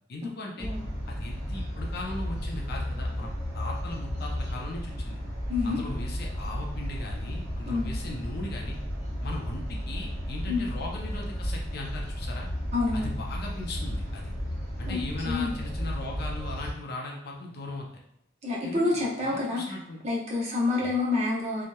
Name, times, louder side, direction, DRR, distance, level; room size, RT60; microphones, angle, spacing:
voice 1, 0.1-0.7 1.1-5.2 5.6-8.7 9.2-12.5 12.9-14.3 14.8-17.9 18.6-20.0 20.8-20.9, left 2 dB, 55° left, 0 dB, 0.5 m, -38 dB
sound 1, 0.6-16.7, equal, 20° left, 0.8 m, -33 dB
voice 2, 5.5-5.8 7.7-7.9 10.5-10.6 12.7-13.1 14.9-15.0 15.2-15.5 18.4-19.6 20.0-21.6, left 3 dB, 35° right, -4 dB, 0.7 m, -28 dB
2.8 x 2.1 x 2.2 m, 0.79 s
head